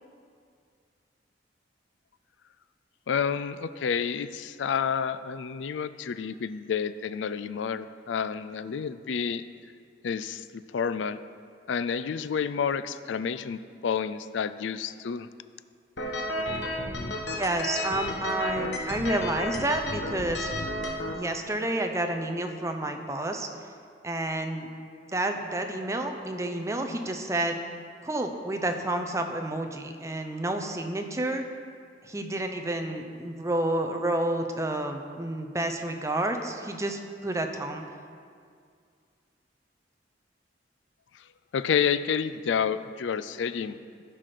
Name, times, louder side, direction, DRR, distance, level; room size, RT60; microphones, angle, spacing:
voice 1, 3.1-9.4 10.0-11.2 11.7-15.3 41.5-43.8, left 7 dB, 85° left, 13 dB, 0.4 m, -29 dB
sound 1, 16.0-21.1, left 1 dB, 70° left, 1.2 m, -32 dB
voice 2, 17.3-20.5 21.1-23.5 24.0-24.7 25.1-27.6 28.0-31.4 32.0-37.8, right 1 dB, 15° right, 5 dB, 0.7 m, -30 dB
15.5 x 6.0 x 5.0 m, 2.2 s
head